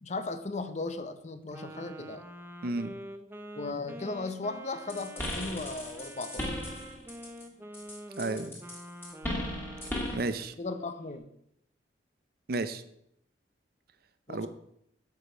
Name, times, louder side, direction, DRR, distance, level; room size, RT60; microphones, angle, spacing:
voice 1, 0.0-2.2 3.5-6.5 10.6-11.3 14.3-14.5, left 3 dB, 40° left, 10 dB, 0.6 m, -36 dB
Wind instrument woodwind instrument, 1.5-10.1, right 1 dB, 10° right, 0.5 m, -46 dB
voice 2, 2.6-2.9 8.2-8.5 10.1-10.5 12.5-12.8 14.3-14.5, right 2 dB, 55° right, 11 dB, 0.6 m, -32 dB
sound 1, 4.9-7.4 7.7-10.3, left 1 dB, 10° left, 2.0 m, -36 dB
8.3 x 5.1 x 6.1 m, 0.75 s
head